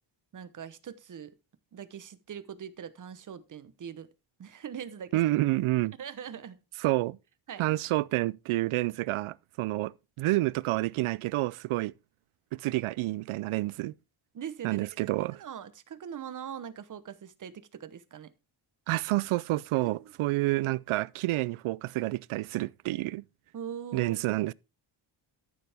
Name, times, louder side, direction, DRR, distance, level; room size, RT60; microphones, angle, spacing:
voice 1, 0.3-1.3 1.7-4.1 4.4-5.2 6.0-6.6 7.5-7.7 14.3-14.9 15.3-18.3 19.8-20.4 23.5-24.2, right 8 dB, 40° right, 1.0 m, -42 dB
voice 2, 5.1-5.9 6.8-7.2 7.6-11.9 12.5-13.9 14.6-15.4 18.9-23.2 23.9-24.5, right 18 dB, 90° right, 0.5 m, -29 dB
13.0 x 7.1 x 3.5 m
wide cardioid pair, 150°, 48 cm